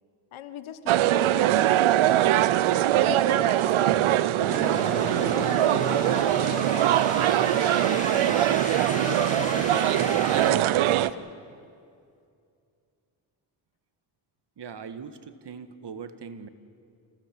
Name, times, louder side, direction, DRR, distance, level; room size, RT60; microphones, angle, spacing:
voice 1, 0.3-2.4 3.0-6.9 7.3-8.5 9.0-11.3, left 9 dB, 85° left, 11 dB, 1.3 m, -41 dB
sound 1, 0.9-11.1, right 13 dB, 80° right, 0.7 m, -22 dB
sound 2, 4.5-10.5, left 1 dB, 15° left, 2.6 m, -34 dB
voice 2, 14.6-16.5, right 6 dB, 60° right, 11 dB, 1.6 m, -40 dB
28.0 x 17.0 x 7.6 m, 2.4 s
cardioid pair, 50°, 47 cm